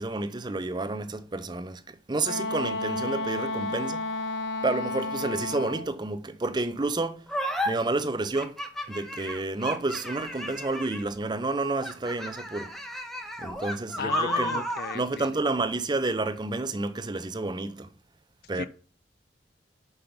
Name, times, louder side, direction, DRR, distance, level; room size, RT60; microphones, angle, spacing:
voice 1, 0.0-4.1 4.6-7.2 7.7-8.6 8.9-12.7 13.4-14.6 14.9-17.9 18.5-18.7, right 2 dB, 25° right, 0.6 m, -30 dB
Wind instrument woodwind instrument, 2.2-5.9, left 2 dB, 75° left, 0.7 m, -31 dB
sound 1, 7.3-7.7 8.3-11.2 11.8-15.0, equal, ahead, 0.8 m, -33 dB
voice 2, 14.0-15.4 18.6-18.7, left 7 dB, 60° left, 0.3 m, -35 dB
5.5 x 5.1 x 5.9 m
head